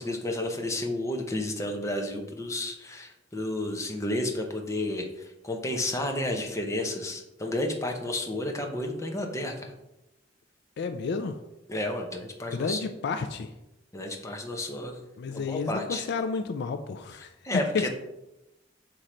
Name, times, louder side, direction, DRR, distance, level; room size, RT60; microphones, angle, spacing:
voice 1, 0.0-9.7 11.7-12.8 13.9-15.0 15.3-16.0 17.4-17.9, left 1 dB, 15° left, 2 dB, 0.8 m, -31 dB
voice 2, 10.8-11.4 12.5-13.5 15.2-17.3 17.7-17.9, left 4 dB, 60° left, 8 dB, 0.4 m, -31 dB
6.5 x 3.8 x 4.3 m, 0.93 s
head